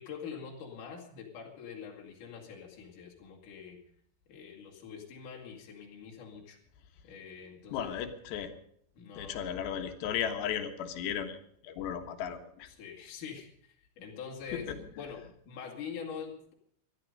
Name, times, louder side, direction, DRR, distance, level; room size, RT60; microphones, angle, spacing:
voice 1, 0.0-3.8 4.3-6.6 7.0-7.9 8.9-9.5 12.7-16.5, left 6 dB, 55° left, -2 dB, 3.7 m, -45 dB
voice 2, 7.7-8.5 9.2-11.4 11.6-12.7 14.7-14.8, left 9 dB, 85° left, 7 dB, 3.6 m, -35 dB
20.5 x 13.0 x 5.4 m, 0.67 s
omnidirectional pair, 4.8 m